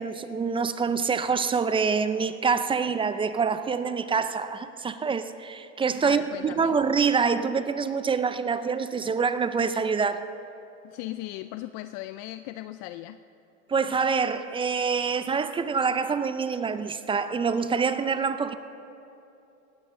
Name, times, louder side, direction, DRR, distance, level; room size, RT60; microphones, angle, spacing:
voice 1, 0.0-10.2 13.7-18.6, right 5 dB, 15° right, 0.5 m, -26 dB
voice 2, 6.0-6.8 10.8-13.2, left 15 dB, 50° left, 0.5 m, -37 dB
18.5 x 15.0 x 3.8 m
hypercardioid pair, 105°, 36 cm